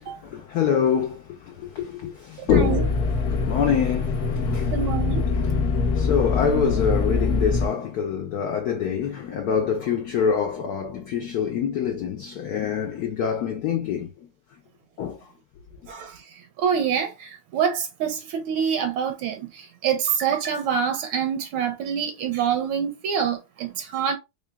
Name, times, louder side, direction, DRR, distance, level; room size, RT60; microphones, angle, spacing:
voice 1, 0.0-2.9 3.3-4.9 5.3-14.3 15.0-15.3, left 7 dB, 75° left, 0.9 m, -26 dB
voice 2, 2.4-2.8 4.7-5.2 15.9-16.2 16.6-24.2, right 7 dB, 80° right, 1.4 m, -26 dB
sound 1, 2.5-7.7, left 4 dB, 60° left, 1.1 m, -24 dB
3.9 x 3.4 x 2.2 m
omnidirectional pair, 2.3 m